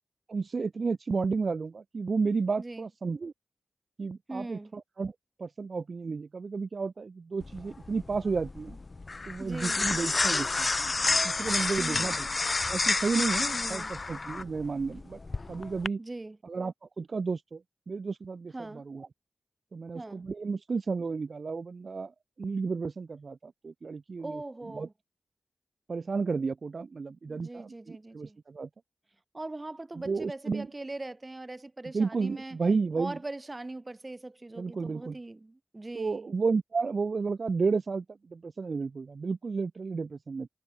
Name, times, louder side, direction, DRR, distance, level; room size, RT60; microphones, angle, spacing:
voice 1, 0.3-3.3 4.0-5.1 5.4-8.8 9.3-12.3 12.6-15.2 15.5-16.0 16.4-19.1 19.7-24.9 25.9-28.7 30.0-30.7 31.9-33.2 34.5-35.2 35.9-40.5, right 4 dB, 60° right, 1.6 m, -32 dB
voice 2, 2.6-2.9 4.3-4.7 9.4-9.8 11.8-12.2 13.5-13.9 16.0-16.4 18.5-18.8 19.9-20.2 24.2-24.9 27.3-28.4 29.3-32.6 33.0-36.3, right 2 dB, 30° right, 6.6 m, -41 dB
sound 1, 7.4-15.9, left 3 dB, 45° left, 0.4 m, -30 dB
cardioid pair, 50°, 0 cm